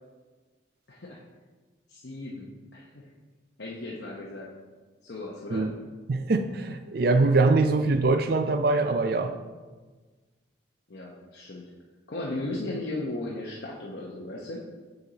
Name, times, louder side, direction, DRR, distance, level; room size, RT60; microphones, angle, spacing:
voice 1, 0.9-1.2 1.9-3.0 3.6-4.5 5.0-5.7 10.9-11.6 12.1-14.6, left 2 dB, 60° left, -4 dB, 0.8 m, -36 dB
voice 2, 6.1-9.3, right 3 dB, 55° right, 8 dB, 0.4 m, -23 dB
7.0 x 6.1 x 4.0 m, 1.3 s
head